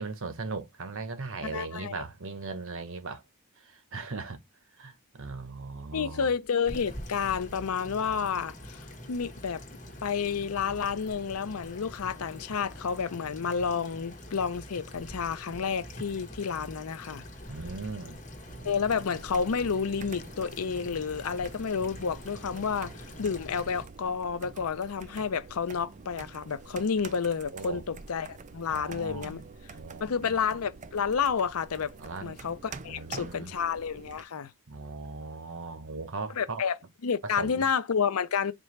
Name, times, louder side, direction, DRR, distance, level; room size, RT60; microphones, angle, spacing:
voice 1, 0.0-3.2 3.6-4.4 4.8-6.3 17.5-18.2 27.5-27.8 28.7-29.4 29.7-30.4 32.0-32.4 32.8-33.5 34.7-36.6 37.2-37.6, right 4 dB, 65° right, 0.9 m, -38 dB
voice 2, 1.4-2.0 5.9-9.6 10.0-17.2 18.6-29.4 30.0-31.9 32.2-34.5 36.4-36.8 37.0-38.5, left 6 dB, 80° left, 0.6 m, -30 dB
sound 1, 6.4-23.9, left 1 dB, 35° left, 1.3 m, -45 dB
sound 2, 18.5-34.2, right 4 dB, 35° right, 0.4 m, -47 dB
4.4 x 2.5 x 3.2 m
head